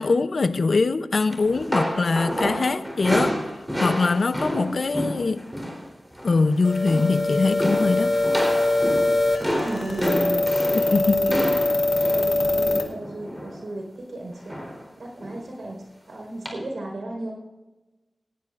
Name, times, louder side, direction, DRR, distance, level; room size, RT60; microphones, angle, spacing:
voice 1, 0.0-3.4 3.8-5.5 6.2-8.2 10.7-11.2, left 4 dB, 70° left, 0.6 m, -22 dB
sound 1, 1.3-5.9 6.1-6.5 6.7-7.2 7.6-13.6 14.5-14.9 15.2-15.4 16.5-16.6, equal, 5° right, 3.7 m, -29 dB
voice 2, 2.3-2.6 4.4-4.8 9.5-11.5 11.9-14.6 15.0-17.3, right 2 dB, 85° right, 4.6 m, -34 dB
sound 2, 6.6-12.8, left 2 dB, 50° left, 2.0 m, -23 dB
19.0 x 16.5 x 2.5 m
wide cardioid pair, 80°, 0 cm